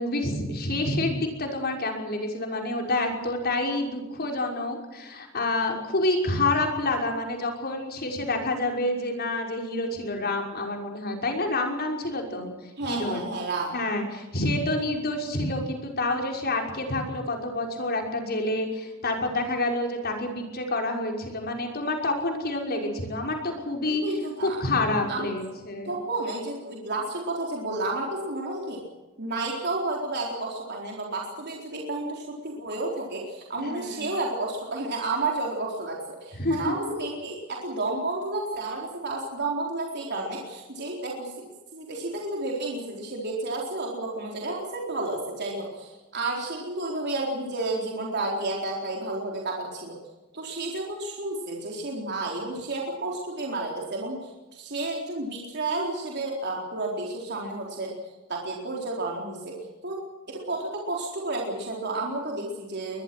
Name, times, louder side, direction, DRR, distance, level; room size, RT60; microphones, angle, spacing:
voice 1, 0.0-12.5 12.8-13.3 13.7-24.0 24.4-25.9 33.6-34.1 36.3-36.7, left 2 dB, 50° left, 2 dB, 5.7 m, -28 dB
voice 2, 12.8-13.7 23.9-24.6 25.1-25.3 25.9-28.8 29.2-41.5 41.7-50.0 50.3-57.9 58.3-59.6 59.8-63.0, right 2 dB, 55° right, -1 dB, 4.1 m, -31 dB
23.0 x 21.5 x 6.2 m, 1.2 s
head